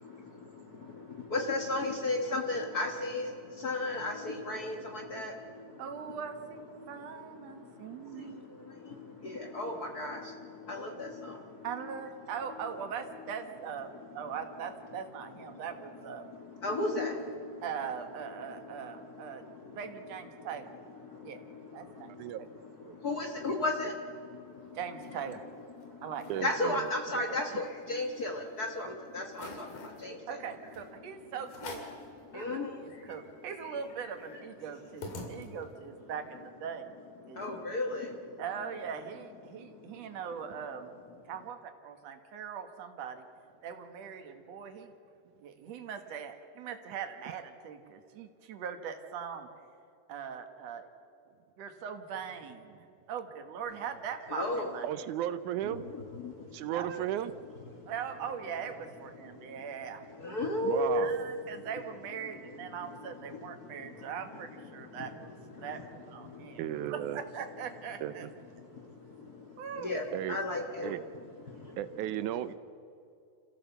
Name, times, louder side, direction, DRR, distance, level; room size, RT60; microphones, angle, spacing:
voice 1, 0.0-5.8 6.8-6.9 7.4-11.6 16.2-17.6 18.6-19.8 20.3-20.5 21.0-24.8 25.8-26.0 26.4-30.4 32.2-32.9 35.2-35.3 37.2-38.4 39.6-39.9 54.3-54.7 55.6-56.7 57.7-57.9 59.3-59.6 60.2-61.2 62.9-63.0 63.3-64.1 64.7-65.1 65.6-65.8 66.2-66.8 68.6-71.0 71.4-71.8, left 2 dB, 65° left, 2 dB, 0.9 m, -36 dB
voice 2, 5.8-8.5 11.6-13.9 14.1-16.2 17.6-19.5 19.7-20.7 21.2-21.4 21.7-22.2 23.4-23.5 24.7-25.4 26.0-26.5 30.3-31.9 32.3-36.9 37.3-37.6 38.4-40.9 41.3-43.2 43.6-44.9 45.4-49.5 50.1-50.9 51.6-55.1 56.7-57.1 57.9-60.0 60.9-65.3 65.6-66.7 66.9-68.3 69.6-70.0, right 7 dB, 60° right, 6 dB, 2.2 m, -41 dB
sound 1, 24.5-25.4 25.8-25.9 26.1-26.5 26.9-28.5 28.9-29.0 29.3-30.0 30.7-30.9 31.5-32.0 32.5-32.6 32.8-35.8, left 3 dB, 90° left, 4.3 m, -47 dB
voice 3, 26.3-27.2 54.8-55.8 56.5-57.3 60.6-61.1 66.6-67.2 68.0-68.3 70.1-70.4 70.8-71.0 71.8-72.5, right 12 dB, 75° right, 13 dB, 1.9 m, -34 dB
27.0 x 15.5 x 7.0 m, 2.5 s
omnidirectional pair, 3.9 m